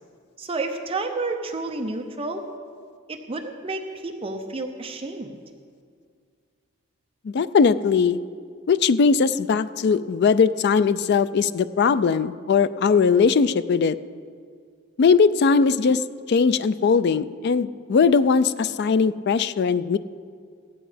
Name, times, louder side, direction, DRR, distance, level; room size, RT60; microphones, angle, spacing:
voice 1, 0.4-2.5 3.1-5.4, right 3 dB, 25° right, 4 dB, 0.7 m, -30 dB
voice 2, 7.2-8.2 8.7-14.0 15.0-16.0 16.3-20.0, left 5 dB, 50° left, 15 dB, 0.3 m, -20 dB
15.0 x 10.0 x 5.0 m, 2.1 s
head